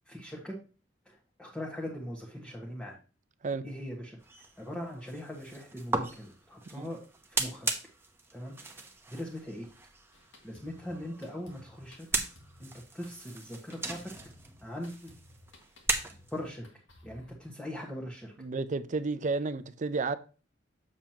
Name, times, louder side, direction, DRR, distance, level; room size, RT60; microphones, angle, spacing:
voice 1, 0.0-0.6 1.0-3.0 3.6-7.0 7.3-7.7 8.3-9.7 10.4-12.2 12.6-12.7 12.9-14.1 14.6-15.1 16.3-16.7 17.0-18.3, left 1 dB, 5° left, 1.3 m, -41 dB
sound 1, 4.2-16.5, right 3 dB, 15° right, 0.9 m, -38 dB
Drum kit, 10.1-17.3, left 1 dB, 85° left, 1.9 m, -57 dB
voice 2, 18.4-20.2, right 4 dB, 40° right, 0.5 m, -31 dB
7.3 x 7.1 x 2.9 m
head